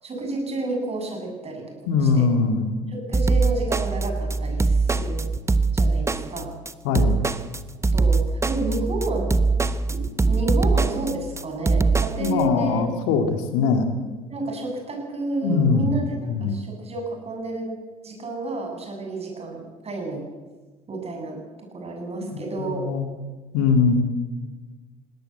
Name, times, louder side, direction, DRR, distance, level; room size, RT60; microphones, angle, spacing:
voice 1, 0.0-2.3 2.9-5.3 5.7-6.5 7.9-9.3 9.9-12.9 14.3-17.7 18.0-20.3 20.9-21.4 21.7-22.9, right 2 dB, 35° right, 2 dB, 7.9 m, -30 dB
voice 2, 1.9-2.7 6.8-7.2 12.2-13.9 15.4-15.9 16.3-16.6 22.3-23.1 23.5-24.0, left 5 dB, 65° left, 7 dB, 2.5 m, -21 dB
sound 1, 3.1-12.3, right 3 dB, 15° right, 1.2 m, -22 dB
20.5 x 18.0 x 8.1 m, 1.3 s
figure-of-eight pair, 60°, 18 cm